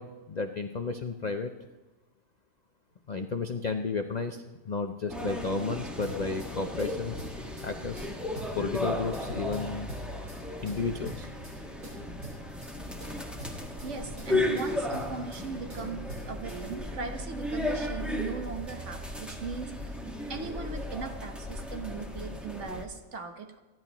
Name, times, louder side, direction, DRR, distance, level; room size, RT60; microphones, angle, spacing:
voice 1, 0.0-1.5 3.1-7.2 7.6-8.1 8.5-9.9 10.6-11.3, left 4 dB, 70° left, 6 dB, 0.4 m, -33 dB
sound 1, 5.1-22.8, left 1 dB, ahead, 1.4 m, -35 dB
sound 2, 6.0-6.5 6.8-7.7 8.0-8.9 9.1-10.4 10.7-11.6 11.8-12.7 13.0-13.9 14.2-15.4 15.7-16.6, equal, 75° right, 4.6 m, -44 dB
voice 2, 13.8-20.0 20.3-23.6, right 5 dB, 50° right, 5 dB, 1.3 m, -39 dB
27.5 x 10.5 x 3.0 m, 1.2 s
omnidirectional pair, 1.7 m